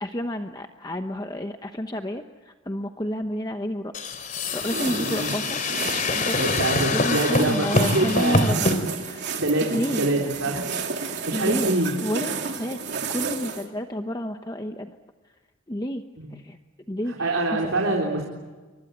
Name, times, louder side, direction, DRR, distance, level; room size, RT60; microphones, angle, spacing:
voice 1, 0.0-4.2 4.5-9.3 9.6-10.3 11.0-12.8 13.1-14.9 15.7-16.0 16.3-16.6 16.9-17.6, equal, 20° left, 6 dB, 1.0 m, -31 dB
sound 1, 3.9-8.8, left 2 dB, 40° left, 3.4 m, -25 dB
sound 2, 4.6-13.7, right 5 dB, 55° right, 3.4 m, -32 dB
voice 2, 6.3-8.4 9.4-10.7 11.0-11.9 16.2-16.3 17.1-18.2, right 2 dB, 75° right, 0 dB, 3.8 m, -25 dB
28.5 x 24.5 x 8.1 m, 1.4 s
head